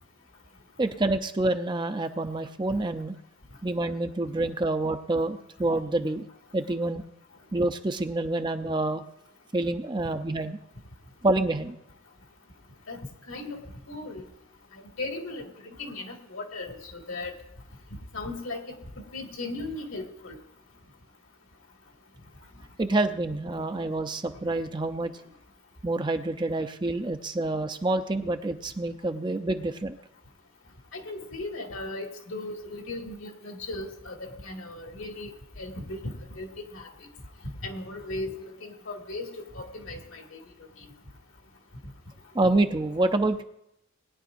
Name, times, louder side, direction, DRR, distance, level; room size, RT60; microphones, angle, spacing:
voice 1, 0.8-3.2 3.6-6.2 6.5-7.0 7.5-9.0 9.5-10.6 11.2-11.8 22.8-25.1 25.8-30.0 42.3-43.4, right 2 dB, 20° right, 7 dB, 0.5 m, -27 dB
voice 2, 13.3-13.6 13.9-14.2 15.0-15.5 15.8-17.3 18.1-18.6 19.1-20.4 30.9-35.3 35.6-36.9 37.6-39.3 39.5-40.4 40.8-40.9, left 2 dB, 65° left, 2 dB, 2.1 m, -37 dB
20.0 x 10.0 x 2.6 m, 0.80 s
head